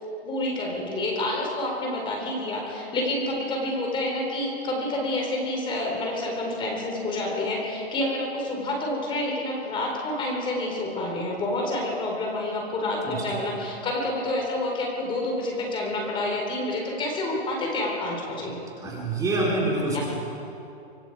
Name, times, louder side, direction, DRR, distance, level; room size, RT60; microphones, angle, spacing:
voice 1, 0.2-18.6 19.9-20.0, left 1 dB, 15° left, -1 dB, 4.3 m, -28 dB
voice 2, 13.0-13.4 18.8-20.0, right 2 dB, 10° right, -4 dB, 4.1 m, -26 dB
26.0 x 22.5 x 4.9 m, 2.8 s
hypercardioid pair, 140°, 31 cm